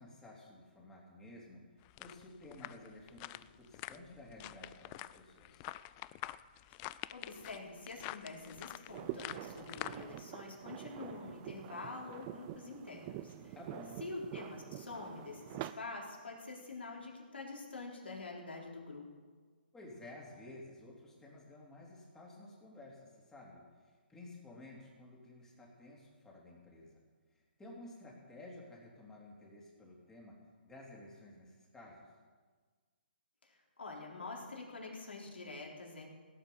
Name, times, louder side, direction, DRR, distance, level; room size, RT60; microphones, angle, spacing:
voice 1, 0.0-1.6 2.0-5.6 13.5-14.0 19.7-27.0 27.6-30.4 30.6-32.1, left 2 dB, 10° left, -3 dB, 3.3 m, -53 dB
sound 1, 1.8-10.2, left 17 dB, 25° left, 0.3 m, -47 dB
voice 2, 7.1-13.6 14.0-19.0 33.4-36.1, left 3 dB, 80° left, -1 dB, 3.9 m, -46 dB
sound 2, 8.9-15.7, right 13 dB, 30° right, 0.6 m, -46 dB
17.0 x 8.2 x 7.1 m, 1.5 s
hypercardioid pair, 140°, 6 cm